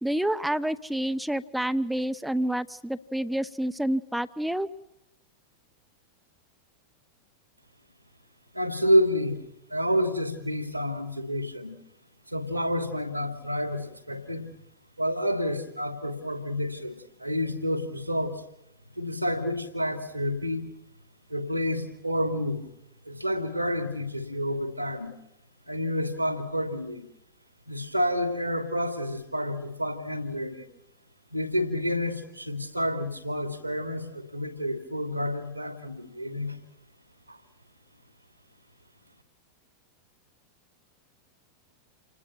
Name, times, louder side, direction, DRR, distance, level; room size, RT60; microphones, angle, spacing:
voice 1, 0.0-4.7, right 1 dB, 5° right, 13 dB, 0.9 m, -28 dB
voice 2, 8.5-9.4 9.7-11.7 12.3-14.5 15.0-18.4 19.0-20.6 21.3-22.7 23.0-25.1 25.7-27.0 27.7-30.6 31.3-36.6 37.3-37.4, equal, 90° right, 8 dB, 2.9 m, -29 dB
29.0 x 20.5 x 5.8 m, 0.84 s
figure-of-eight pair, 90°, 0 cm